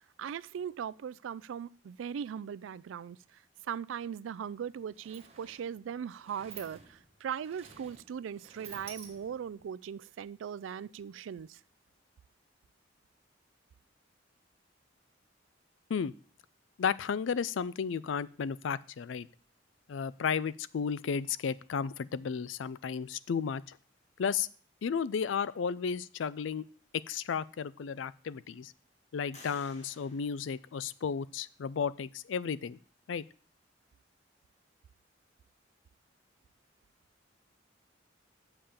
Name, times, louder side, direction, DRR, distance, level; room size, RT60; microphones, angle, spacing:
voice 1, 0.2-3.2 3.6-11.6, right 8 dB, 85° right, 0.3 m, -39 dB
Sliding door, 4.3-4.4 4.7-9.6, right 6 dB, 35° right, 1.2 m, -52 dB
voice 2, 16.8-19.3 19.9-23.8 24.2-24.5 24.8-26.6 26.9-28.7 29.1-32.8 33.1-33.2, left 6 dB, 85° left, 0.4 m, -33 dB
sound 1, 29.3-31.3, left 2 dB, 35° left, 1.8 m, -56 dB
7.1 x 5.7 x 6.6 m
head